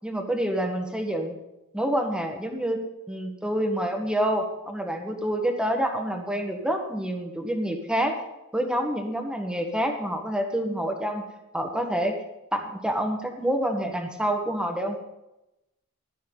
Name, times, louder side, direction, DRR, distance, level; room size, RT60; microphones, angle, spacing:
voice 1, 0.0-1.4 1.7-2.8 3.1-8.2 8.5-11.2 11.5-12.1 12.5-15.0, equal, 5° right, 3 dB, 1.7 m, -27 dB
15.0 x 12.0 x 4.1 m, 0.93 s
head